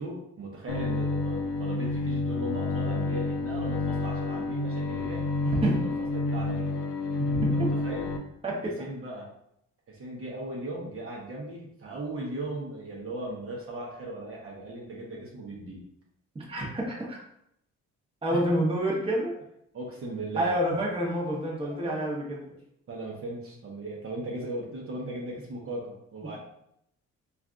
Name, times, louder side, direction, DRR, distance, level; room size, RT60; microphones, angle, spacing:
voice 1, 0.0-5.2 5.6-5.9 6.3-6.7 7.5-8.1 8.6-9.3 9.9-15.9 18.3-18.4 19.7-20.8 21.6-22.0 22.5-22.6 22.9-26.4, right 2 dB, 45° right, -3 dB, 0.8 m, -38 dB
Bowed string instrument, 0.7-8.2, left 3 dB, 85° left, 0.5 m, -29 dB
voice 2, 5.4-5.8 7.2-7.7 8.4-8.8 16.3-17.2 18.2-19.4 20.4-22.4, right 1 dB, 20° right, -3 dB, 0.9 m, -28 dB
3.3 x 2.4 x 2.4 m, 0.75 s
cardioid pair, 90°, 30 cm